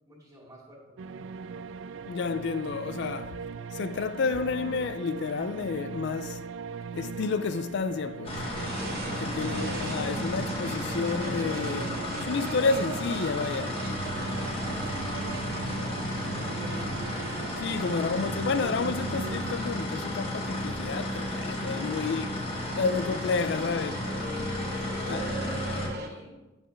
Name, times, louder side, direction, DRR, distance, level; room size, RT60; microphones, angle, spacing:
voice 1, 0.1-1.1 9.0-9.7 14.2-17.1 21.9-22.3 24.5-26.4, equal, 20° right, 2.3 m, -49 dB
sound 1, 1.0-19.5, right 6 dB, 75° right, 0.3 m, -39 dB
voice 2, 2.0-3.4 3.7-6.4 6.9-8.4 9.2-13.8 17.6-22.3 22.7-24.1 25.0-25.3, left 4 dB, 65° left, 0.4 m, -30 dB
sound 2, 8.2-25.9, left 1 dB, 30° left, 1.4 m, -33 dB
sound 3, 8.5-26.1, right 1 dB, 55° right, 0.9 m, -44 dB
8.6 x 5.5 x 3.3 m
head